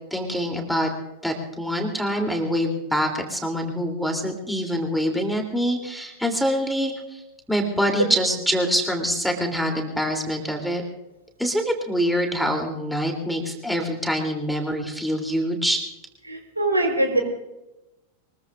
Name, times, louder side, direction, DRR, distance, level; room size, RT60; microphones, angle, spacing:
voice 1, 0.1-0.9 1.2-7.2 7.5-10.8 11.4-15.8, equal, ahead, 2 dB, 3.2 m, -25 dB
voice 2, 16.3-17.2, right 1 dB, 85° right, 3 dB, 4.2 m, -22 dB
24.0 x 21.5 x 2.6 m, 0.96 s
figure-of-eight pair, 90°, 0 cm